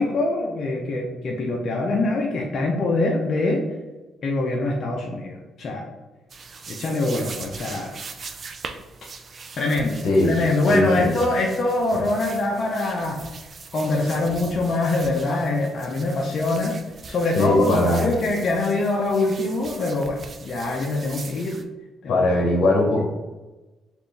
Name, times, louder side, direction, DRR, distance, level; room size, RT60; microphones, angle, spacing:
voice 1, 0.0-3.7 4.2-5.9 6.7-8.0 9.6-13.2 13.7-16.8 17.1-21.6 22.0-22.2 22.9-23.0, left 2 dB, 50° left, -1 dB, 0.6 m, -24 dB
sound 1, 6.3-21.6, right 4 dB, 45° right, 0.4 m, -41 dB
voice 2, 10.7-11.1 17.3-18.1 22.1-23.0, left 1 dB, 75° left, -1 dB, 0.9 m, -20 dB
4.2 x 2.5 x 3.3 m, 1.1 s
cardioid pair, 90°, 0 cm